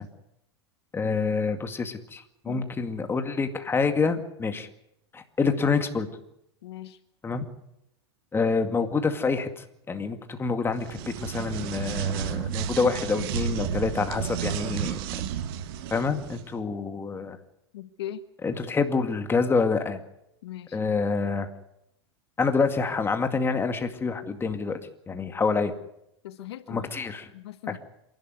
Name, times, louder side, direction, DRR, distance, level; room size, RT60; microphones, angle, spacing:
voice 1, 0.9-4.7 5.1-6.1 7.2-7.5 8.3-15.0 15.9-17.4 18.4-20.0 20.7-21.5 22.4-24.8 25.1-25.7 26.7-27.3 27.7-27.8, left 4 dB, 15° left, 7 dB, 2.2 m, -27 dB
voice 2, 6.6-7.0 17.7-18.2 20.4-20.8 26.2-26.9 27.3-27.8, left 12 dB, 75° left, 13 dB, 1.1 m, -39 dB
sound 1, 10.7-16.4, right 9 dB, 60° right, 1.7 m, -31 dB
27.0 x 12.0 x 9.5 m, 0.82 s
hypercardioid pair, 115°, 14 cm